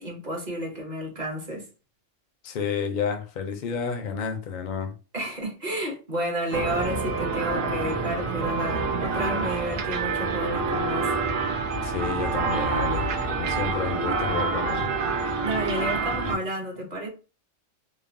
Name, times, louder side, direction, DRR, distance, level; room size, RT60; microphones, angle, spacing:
voice 1, 0.0-1.7 5.1-11.1 15.4-17.1, right 1 dB, 40° right, 0.7 m, -31 dB
voice 2, 2.4-4.9 11.8-14.9, left 6 dB, 60° left, 0.5 m, -30 dB
sound 1, 6.5-16.3, right 4 dB, 85° right, 1.1 m, -27 dB
3.1 x 2.0 x 2.5 m
omnidirectional pair, 1.3 m